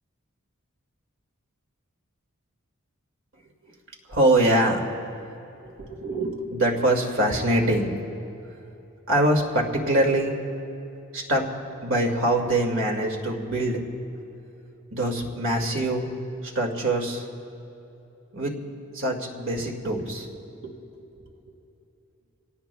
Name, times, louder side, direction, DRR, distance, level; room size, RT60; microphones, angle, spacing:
voice 1, 4.1-4.9 5.6-7.9 9.1-10.4 11.1-11.5 11.8-13.8 14.9-16.1 16.4-17.3 18.3-18.5 18.9-20.3 20.6-20.8, right 1 dB, 65° right, 1 dB, 2.2 m, -24 dB
28.0 x 18.0 x 2.3 m, 2.9 s
head